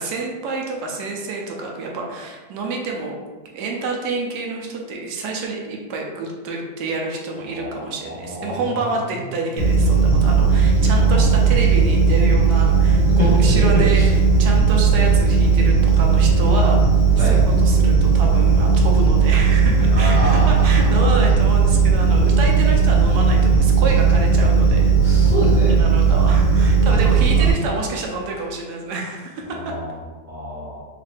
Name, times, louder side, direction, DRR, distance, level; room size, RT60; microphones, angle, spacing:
voice 1, 0.0-3.2 3.5-16.8 17.2-25.1 25.8-29.7, right 3 dB, 75° right, 0 dB, 1.1 m, -28 dB
voice 2, 8.3-8.8 11.0-11.2 13.2-13.3 13.9-14.1 17.2-17.3 19.9-20.5 25.0-25.7 27.4-27.5 29.6-29.9 30.3-30.8, equal, 35° right, -8 dB, 0.9 m, -27 dB
sound 1, 9.6-27.5, right 5 dB, 80° left, 1.6 m, -16 dB
3.6 x 2.4 x 3.3 m, 1.3 s
omnidirectional pair, 1.8 m